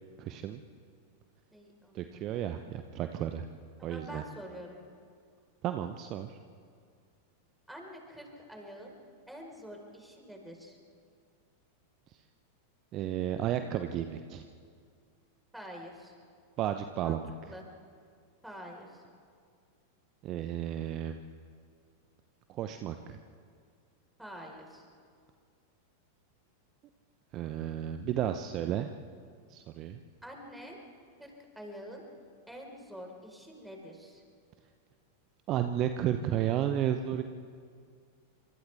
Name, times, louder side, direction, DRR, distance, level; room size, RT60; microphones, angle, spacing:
voice 1, 0.2-0.6 1.9-3.4 3.8-4.2 5.6-6.4 12.9-14.4 16.6-17.3 20.2-21.2 22.5-23.2 27.3-28.9 29.5-30.0 35.5-37.2, right 11 dB, 35° right, 8 dB, 0.8 m, -32 dB
voice 2, 1.5-2.3 3.8-4.8 7.7-8.9 9.3-10.8 15.5-16.1 17.0-17.2 17.4-17.6 18.4-19.0 24.2-24.9 30.2-30.8 31.2-32.0 32.5-34.2, equal, 5° right, 0 dB, 4.6 m, -46 dB
28.0 x 26.0 x 3.6 m, 2.2 s
figure-of-eight pair, 90°, 0 cm